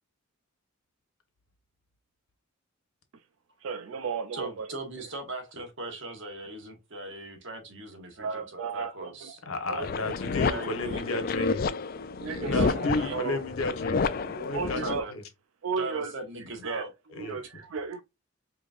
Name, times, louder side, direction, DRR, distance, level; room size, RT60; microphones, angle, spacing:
voice 1, 3.6-4.7 8.2-9.3 9.7-10.2 12.2-13.4 14.5-15.1 15.6-16.1 16.6-16.9 17.2-18.0, right 5 dB, 75° right, 0.4 m, -34 dB
voice 2, 4.3-9.4 10.2-11.2 11.6-12.1 12.4-13.1 14.8-15.1 15.8-16.9, right 2 dB, 60° right, 1.4 m, -39 dB
voice 3, 9.4-11.7 12.4-15.2 17.1-17.4, left 2 dB, 85° left, 1.3 m, -33 dB
sound 1, 9.8-15.0, left 4 dB, 45° left, 0.3 m, -30 dB
4.8 x 3.2 x 2.5 m
head